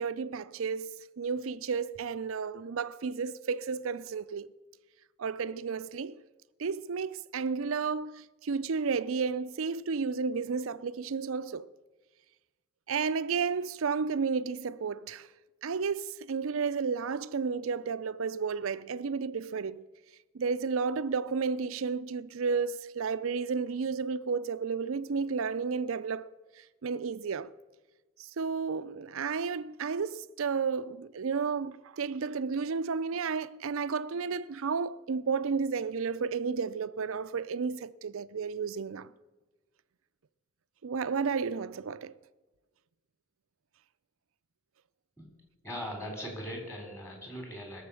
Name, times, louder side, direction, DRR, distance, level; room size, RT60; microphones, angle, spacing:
voice 1, 0.0-4.5 5.2-6.2 6.6-11.7 12.9-15.3 15.6-19.8 20.3-26.3 26.6-27.5 28.2-39.1 40.8-42.1, right 5 dB, 75° right, 0.5 m, -32 dB
voice 2, 45.6-47.8, equal, 15° left, 3.7 m, -40 dB
20.5 x 7.1 x 7.0 m
head